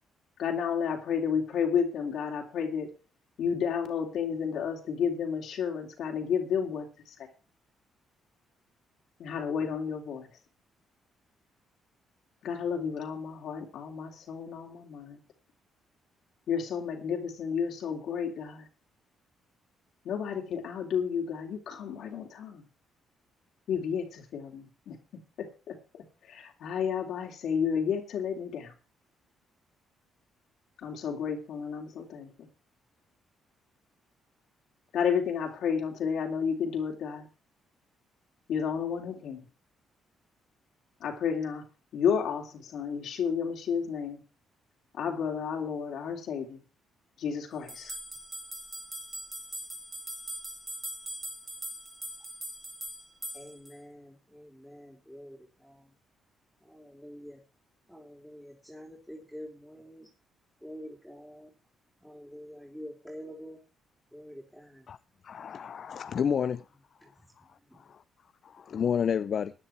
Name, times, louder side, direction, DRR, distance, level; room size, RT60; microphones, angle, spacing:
voice 1, 0.4-2.9 3.4-7.1 9.2-10.3 12.4-15.2 16.5-18.6 20.0-22.6 23.7-25.0 25.4-25.8 26.3-28.7 30.8-32.5 34.9-37.3 38.5-39.4 41.0-41.6 41.9-44.2 44.9-46.6 47.2-47.9, left 7 dB, 70° left, 3.2 m, -31 dB
sound 1, 47.7-53.7, right 1 dB, 25° right, 4.8 m, -41 dB
voice 2, 53.3-55.8 56.7-57.4 57.9-60.1 60.6-61.5 62.0-63.6 64.1-64.8, equal, ahead, 4.2 m, -46 dB
voice 3, 65.2-66.6 67.8-68.0 68.4-69.5, left 7 dB, 55° left, 0.5 m, -30 dB
15.5 x 9.9 x 4.5 m
cardioid pair, 90°, 0 cm